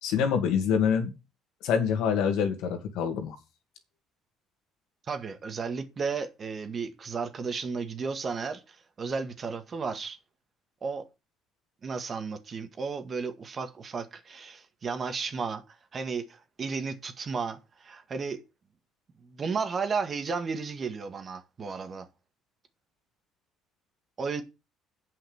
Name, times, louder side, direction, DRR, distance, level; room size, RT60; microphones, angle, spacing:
voice 1, 0.0-1.1 1.6-3.4, left 7 dB, 75° left, 2.3 m, -26 dB
voice 2, 5.1-10.2 10.8-11.1 11.8-15.6 15.9-18.4 19.2-22.1 24.2-24.4, right 5 dB, 35° right, 1.8 m, -33 dB
8.3 x 5.7 x 7.1 m
cardioid pair, 110°, 0 cm